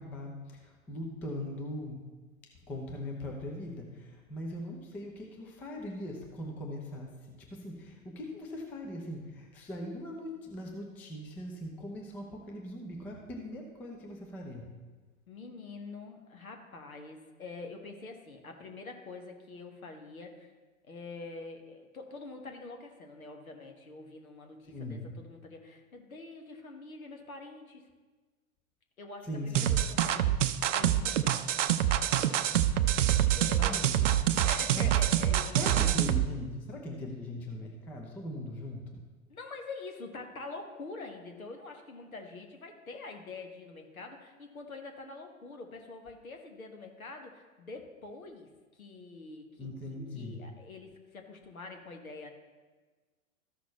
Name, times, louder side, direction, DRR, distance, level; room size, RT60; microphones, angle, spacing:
voice 1, 0.0-2.0 2.7-14.7 24.7-25.1 29.3-29.7 33.6-34.2 34.7-34.9 35.5-39.0 49.6-50.5, left 1 dB, 5° left, 0 dB, 0.3 m, -40 dB
voice 2, 15.3-20.5 20.8-27.8 29.0-30.5 30.7-31.5 33.2-36.0 39.3-49.7 50.1-52.3, left 3 dB, 75° left, 3 dB, 1.4 m, -45 dB
sound 1, 29.5-36.3, right 11 dB, 60° right, 0.5 m, -26 dB
13.5 x 6.1 x 3.1 m, 1.3 s
figure-of-eight pair, 105°, 42 cm